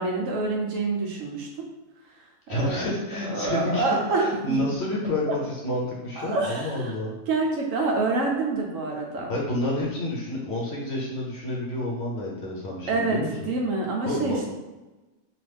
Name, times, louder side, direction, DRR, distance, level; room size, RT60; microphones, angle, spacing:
voice 1, 0.0-1.7 2.5-2.9 3.3-4.6 5.3-5.4 6.2-6.9 7.3-9.3 12.9-14.4, right 3 dB, 70° right, 0 dB, 0.9 m, -27 dB
voice 2, 2.5-3.9 4.2-7.1 9.3-13.5 14.1-14.4, left 1 dB, 55° left, -4 dB, 0.9 m, -29 dB
2.9 x 2.4 x 3.3 m, 1.1 s
omnidirectional pair, 1.5 m